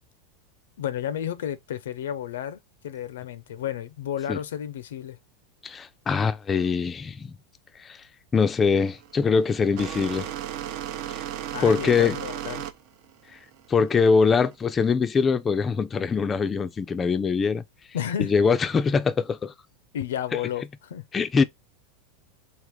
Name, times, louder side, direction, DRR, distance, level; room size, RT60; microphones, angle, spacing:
voice 1, 0.8-2.6 2.8-5.2 11.5-12.7 17.9-18.3 19.9-21.1, left 10 dB, 90° left, 0.6 m, -32 dB
voice 2, 5.6-7.3 7.8-8.0 8.3-10.3 11.6-12.2 13.7-17.6 18.2-19.5 21.1-21.4, left 5 dB, 20° left, 0.4 m, -23 dB
sound 1, 8.7-14.6, right 11 dB, 55° right, 0.7 m, -35 dB
3.6 x 2.5 x 4.6 m
supercardioid pair, 130°, 0 cm